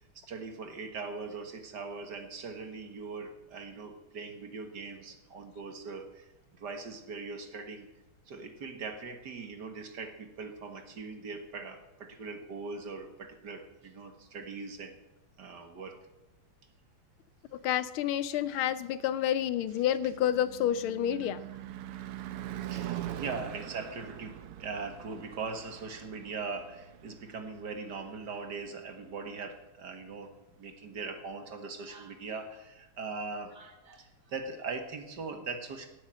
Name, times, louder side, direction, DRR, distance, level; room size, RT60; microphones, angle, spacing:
voice 1, 0.0-6.3 6.6-7.9 8.3-15.0 15.4-16.0 22.6-30.3 30.6-35.9, right 4 dB, 50° right, 6 dB, 2.0 m, -41 dB
voice 2, 17.6-21.4, left 11 dB, 75° left, 15 dB, 1.5 m, -29 dB
Car passing by / Truck / Engine, 18.7-29.0, right 12 dB, 85° right, 1.8 m, -43 dB
17.0 x 8.6 x 7.4 m, 1.0 s
omnidirectional pair, 2.4 m